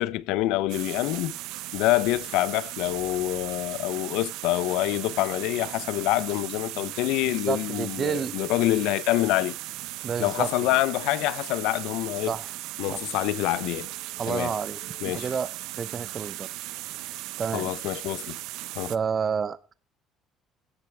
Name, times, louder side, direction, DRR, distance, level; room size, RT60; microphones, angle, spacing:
voice 1, 0.0-1.4 1.7-9.5 10.2-12.3 12.8-13.9 14.3-14.6 15.0-15.3 17.5-18.4 18.8-18.9, left 16 dB, 85° left, 0.4 m, -26 dB
sound 1, 0.7-19.0, right 17 dB, 80° right, 0.5 m, -37 dB
voice 2, 7.4-8.4 10.0-10.5 12.3-12.5 12.9-13.0 14.2-14.8 15.0-15.5 15.8-16.5 17.4-17.7 18.9-19.7, right 6 dB, 30° right, 0.6 m, -29 dB
17.0 x 6.5 x 3.3 m
cardioid pair, 155°, 0 cm